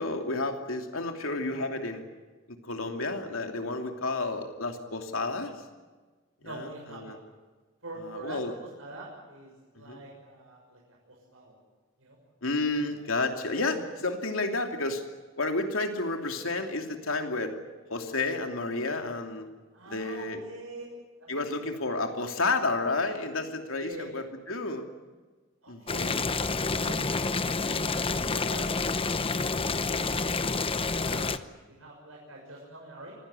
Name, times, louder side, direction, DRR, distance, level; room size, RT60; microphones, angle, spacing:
voice 1, 0.0-2.0 2.5-5.6 6.4-7.2 8.0-8.5 9.8-10.0 12.4-15.0 15.4-17.6 17.9-19.5 19.9-20.4 21.3-24.9 25.7-26.2, left 3 dB, 85° left, 4 dB, 2.9 m, -31 dB
voice 2, 6.4-7.1 7.8-8.4 8.8-10.8 11.1-11.6 12.0-12.2 13.8-13.9 19.7-20.8 21.2-21.8 23.8-24.1 25.6-26.4 26.8-27.7 28.2-28.7 29.7-33.1, right 2 dB, 85° right, -3 dB, 6.6 m, -45 dB
Boiling, 25.9-31.4, left 4 dB, 25° left, 0.9 m, -28 dB
25.5 x 16.5 x 9.9 m, 1.3 s
head